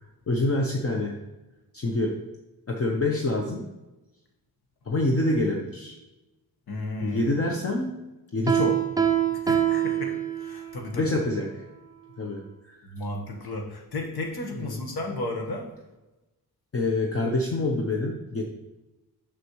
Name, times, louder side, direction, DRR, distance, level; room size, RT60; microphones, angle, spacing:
voice 1, 0.3-1.2 1.7-2.2 2.7-3.7 4.9-5.9 7.0-8.0 8.3-8.8 10.9-11.5 12.2-12.8 14.6-14.8 16.7-18.4, left 2 dB, 40° left, 0 dB, 0.8 m, -26 dB
voice 2, 6.7-7.2 9.3-11.1 12.8-15.8, left 2 dB, 80° left, 2 dB, 1.3 m, -34 dB
Piano, 8.5-10.8, right 9 dB, 10° right, 0.4 m, -24 dB
6.5 x 6.3 x 3.0 m, 1.0 s
wide cardioid pair, 145°, 37 cm